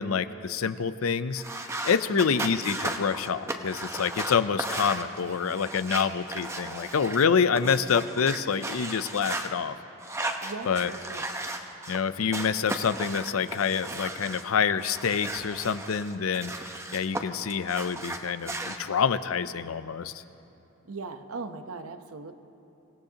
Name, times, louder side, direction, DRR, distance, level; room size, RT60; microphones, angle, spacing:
voice 1, 0.0-1.4 1.8-9.8 10.7-10.9 11.9-20.2, left 6 dB, 80° left, 13 dB, 0.5 m, -27 dB
sound 1, 1.3-9.5 10.0-12.0 12.3-14.4 14.8-17.2 17.5-18.8, right 2 dB, 15° right, 0.8 m, -35 dB
voice 2, 10.4-11.3 20.8-22.3, right 4 dB, 90° right, 8 dB, 0.9 m, -39 dB
25.0 x 17.0 x 2.9 m, 2.9 s
head